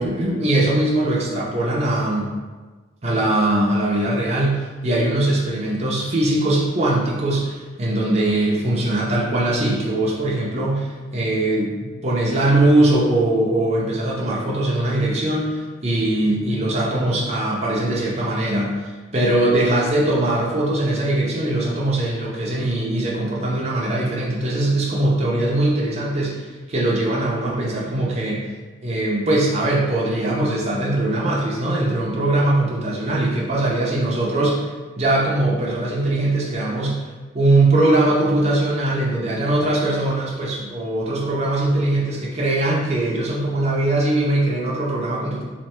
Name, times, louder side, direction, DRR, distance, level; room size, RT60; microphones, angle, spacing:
voice 1, 0.0-2.4 3.0-28.5 28.8-37.0 37.3-45.4, right 1 dB, 40° right, -5 dB, 0.6 m, -21 dB
3.2 x 2.6 x 4.3 m, 1.3 s
head